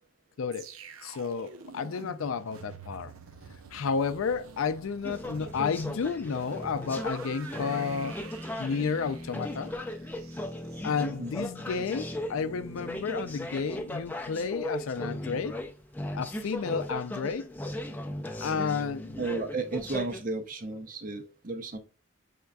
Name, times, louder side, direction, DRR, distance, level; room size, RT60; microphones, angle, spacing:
voice 1, 0.4-0.7 1.0-3.1 3.7-8.2 8.6-9.7 10.8-15.5 16.1-17.5 18.4-19.2, left 5 dB, 80° left, 0.4 m, -31 dB
sound 1, 0.5-11.6 11.9-12.2, right 5 dB, 90° right, 0.6 m, -48 dB
sound 2, 5.0-20.2, left 1 dB, 10° left, 0.4 m, -37 dB
voice 2, 19.2-21.8, right 3 dB, 40° right, 0.6 m, -33 dB
6.5 x 3.5 x 2.3 m
head